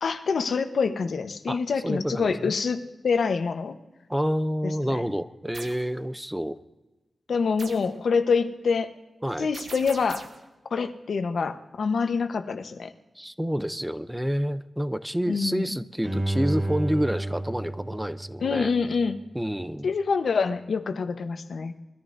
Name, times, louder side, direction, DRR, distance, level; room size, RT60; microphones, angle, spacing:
voice 1, 0.0-3.8 4.6-5.0 7.3-8.9 9.4-10.3 10.7-12.9 15.3-15.7 18.4-19.2 19.8-21.7, left 5 dB, 65° left, 7 dB, 0.9 m, -26 dB
voice 2, 1.5-2.5 4.1-6.6 9.2-9.5 13.2-18.7 19.3-19.9, equal, 5° right, 12 dB, 0.5 m, -28 dB
sound 1, 5.5-5.9 7.6-8.0 9.5-10.5, right 4 dB, 60° right, 1.2 m, -41 dB
Bowed string instrument, 16.0-19.1 19.6-19.7, right 1 dB, 25° right, 1.7 m, -31 dB
23.0 x 14.5 x 2.6 m, 1.1 s
wide cardioid pair, 180°, 0 cm